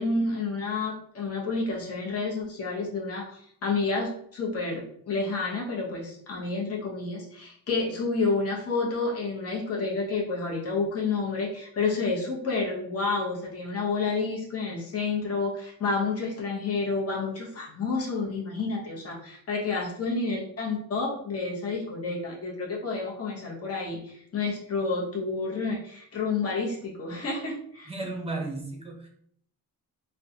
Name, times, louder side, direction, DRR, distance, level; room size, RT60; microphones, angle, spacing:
voice 1, 0.0-27.9, left 3 dB, 40° left, -2 dB, 0.8 m, -30 dB
voice 2, 27.9-29.1, right 2 dB, 15° right, 0 dB, 0.7 m, -34 dB
3.6 x 2.2 x 2.7 m, 0.66 s
wide cardioid pair, 140°, 37 cm